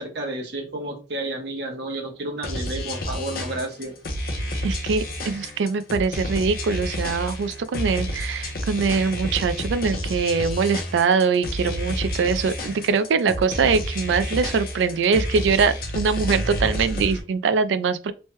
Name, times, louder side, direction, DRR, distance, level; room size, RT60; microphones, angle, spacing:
voice 1, 0.0-3.9, right 2 dB, 65° right, 0.9 m, -31 dB
sound 1, 2.4-17.2, equal, 50° left, 0.6 m, -30 dB
voice 2, 4.6-18.1, right 5 dB, 80° right, 0.4 m, -23 dB
3.1 x 2.1 x 3.0 m
head